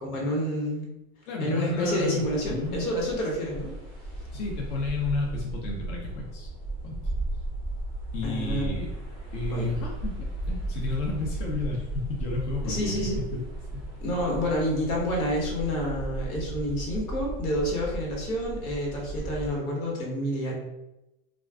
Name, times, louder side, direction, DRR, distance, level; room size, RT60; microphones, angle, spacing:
voice 1, 0.0-0.9 1.4-3.7 8.2-8.8 9.5-9.7 12.6-13.4 14.0-20.5, equal, 90° left, -2 dB, 1.2 m, -29 dB
voice 2, 1.3-2.2 2.5-2.8 4.3-6.5 6.8-7.0 8.1-8.9 9.3-13.4 13.7-13.8, left 3 dB, 55° left, -1 dB, 0.7 m, -32 dB
sound 1, 1.9-19.5, right 1 dB, ahead, 0.4 m, -35 dB
2.3 x 2.2 x 3.5 m, 0.94 s
supercardioid pair, 145°, 41 cm